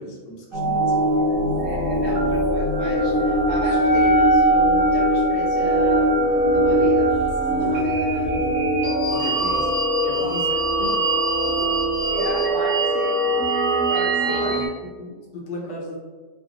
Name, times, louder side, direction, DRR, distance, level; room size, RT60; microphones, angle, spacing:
voice 1, 0.0-1.2 8.2-8.7 9.1-9.7 10.0-10.5 10.8-11.0 11.4-11.7 14.2-14.6 15.0-16.0, left 2 dB, 80° left, -2 dB, 1.6 m, -34 dB
sound 1, 0.5-14.7, right 1 dB, 50° right, 1.2 m, -22 dB
voice 2, 1.0-6.1 6.5-7.1 7.5-8.4 9.2-9.4 10.2-11.0 12.1-13.2 13.5-14.5, right 1 dB, 65° right, -5 dB, 0.6 m, -34 dB
sound 2, 1.3-12.9, left 2 dB, 45° left, 1.1 m, -35 dB
Wind instrument woodwind instrument, 3.6-9.3, right 1 dB, 15° left, 0.7 m, -23 dB
4.9 x 2.4 x 3.0 m, 1.4 s
omnidirectional pair, 1.9 m